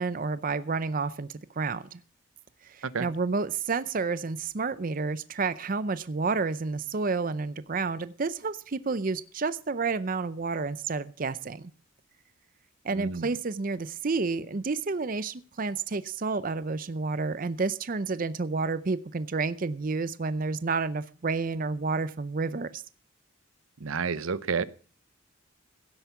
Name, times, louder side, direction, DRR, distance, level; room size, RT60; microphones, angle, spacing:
voice 1, 0.0-2.0 2.6-11.7 12.8-22.8, right 4 dB, 40° right, 15 dB, 0.5 m, -30 dB
voice 2, 12.9-13.3 23.8-24.6, right 5 dB, 80° right, 17 dB, 0.7 m, -30 dB
16.5 x 8.1 x 5.8 m, 0.40 s
head